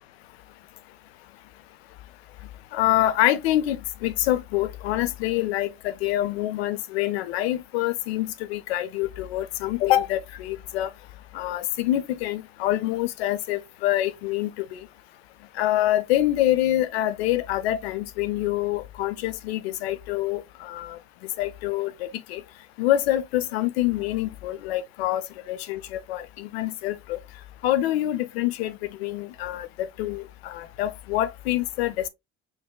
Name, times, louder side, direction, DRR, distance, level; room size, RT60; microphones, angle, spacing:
voice 1, 2.7-10.9 11.3-14.8 15.6-21.0 21.4-21.9 22.3-22.4 22.8-25.2 25.5-27.2 27.6-32.1, left 14 dB, 80° left, 0.6 m, -26 dB
4.9 x 3.9 x 2.2 m
hypercardioid pair, 65°, 31 cm